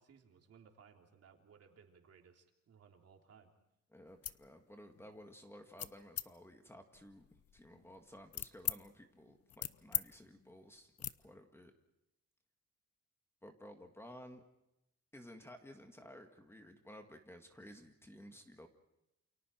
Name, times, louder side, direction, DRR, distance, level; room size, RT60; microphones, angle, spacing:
voice 1, 0.0-3.5, right 6 dB, 55° right, 3 dB, 3.4 m, -62 dB
voice 2, 3.9-11.7 13.4-14.4 15.1-18.7, equal, 10° left, 5 dB, 2.0 m, -55 dB
sound 1, 4.1-4.4 4.9-5.2 5.8-6.3 6.9-8.8 9.2-10.1 10.3-10.5 11.0-11.2, left 10 dB, 55° left, 0.8 m, -41 dB
29.0 x 28.5 x 4.6 m, 0.85 s
wide cardioid pair, 160°, 30 cm